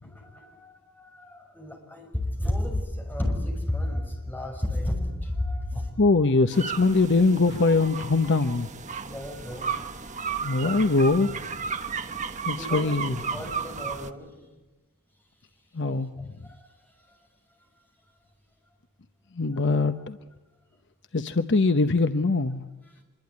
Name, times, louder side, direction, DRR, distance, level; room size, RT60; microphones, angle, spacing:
voice 1, 0.0-6.0 9.0-9.9 12.5-14.6 16.4-16.7 17.1-17.2 19.5-19.6 22.9-23.0, left 1 dB, 10° left, 2 dB, 6.3 m, -32 dB
voice 2, 6.0-8.7 10.4-11.3 12.4-13.2 15.7-16.1 19.4-20.2 21.1-22.6, left 3 dB, 55° left, 9 dB, 0.9 m, -22 dB
sound 1, 6.5-14.1, right 6 dB, 35° right, 1.2 m, -34 dB
25.0 x 23.5 x 9.7 m, 1.2 s
head